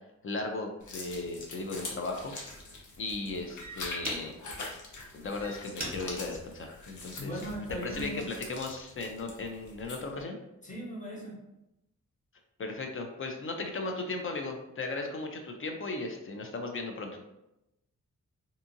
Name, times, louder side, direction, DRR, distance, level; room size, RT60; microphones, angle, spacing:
voice 1, 0.2-2.3 3.0-4.3 5.1-7.3 7.8-10.4 12.6-17.1, left 3 dB, 45° left, 3 dB, 0.4 m, -36 dB
sound 1, 0.8-10.2, left 2 dB, 75° left, 0.7 m, -43 dB
sound 2, 1.4-1.6 2.2-2.5 3.2-3.3 3.6-4.6 5.2-7.6 8.1-8.5, right 1 dB, 30° right, 0.8 m, -43 dB
voice 2, 7.1-8.3 10.6-11.3, equal, 25° left, -5 dB, 1.1 m, -38 dB
2.6 x 2.5 x 2.6 m, 0.90 s
wide cardioid pair, 95°, 30 cm